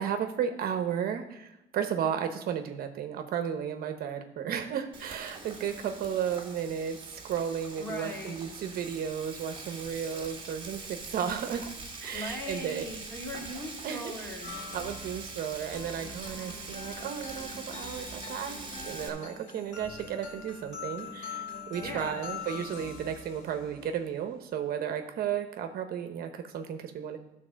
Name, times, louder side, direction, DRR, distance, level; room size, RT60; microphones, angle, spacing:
voice 1, 0.0-11.7 12.0-12.8 13.8-14.1 14.5-18.6 18.8-27.2, right 8 dB, 60° right, 7 dB, 0.9 m, -34 dB
Frying (food), 4.9-19.1, right 3 dB, 30° right, 2.2 m, -43 dB
voice 2, 7.8-8.4 12.1-14.6 21.8-22.2, left 1 dB, 15° left, -1 dB, 2.4 m, -39 dB
sound 1, 14.4-24.1, left 5 dB, 45° left, 2.7 m, -43 dB
12.5 x 4.2 x 6.3 m, 0.93 s
cardioid pair, 110°, 17 cm